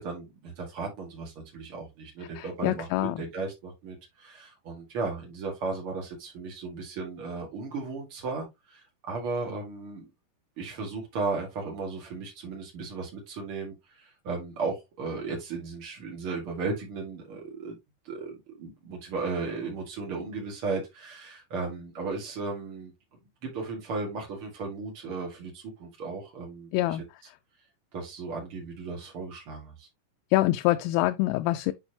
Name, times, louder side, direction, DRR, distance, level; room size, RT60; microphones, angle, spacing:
voice 1, 0.0-10.0 10.6-17.7 18.0-22.9 23.4-27.0 27.9-29.9, right 4 dB, 85° right, 1.2 m, -35 dB
voice 2, 2.4-3.3 26.7-27.0 30.3-31.7, left 17 dB, 85° left, 3.1 m, -25 dB
8.9 x 4.3 x 2.8 m
omnidirectional pair, 5.8 m